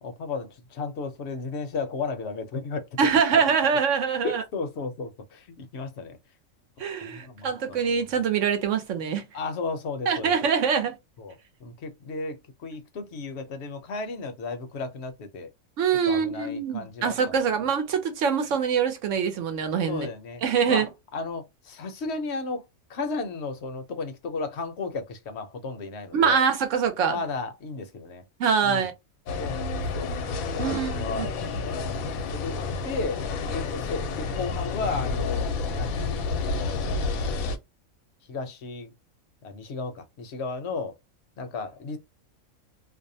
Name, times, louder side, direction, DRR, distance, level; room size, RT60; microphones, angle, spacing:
voice 1, 0.0-2.9 3.3-3.4 4.2-6.2 7.0-8.1 9.3-10.3 11.2-15.5 16.0-17.4 19.9-20.9 21.1-22.6 22.9-26.4 27.0-28.2 28.6-28.9 29.4-30.1 30.5-31.3 32.3-32.6 32.8-36.1 36.6-36.9 38.3-38.9 39.4-41.0 41.4-42.0, left 4 dB, 60° left, 0.8 m, -34 dB
voice 2, 3.0-4.4 6.8-9.2 10.1-11.0 15.8-20.1 20.4-20.9 26.1-27.2 28.4-28.9 30.6-31.6, right 6 dB, 65° right, 1.0 m, -24 dB
sound 1, 29.3-37.6, left 4 dB, 85° left, 1.0 m, -30 dB
2.6 x 2.1 x 2.6 m
omnidirectional pair, 1.4 m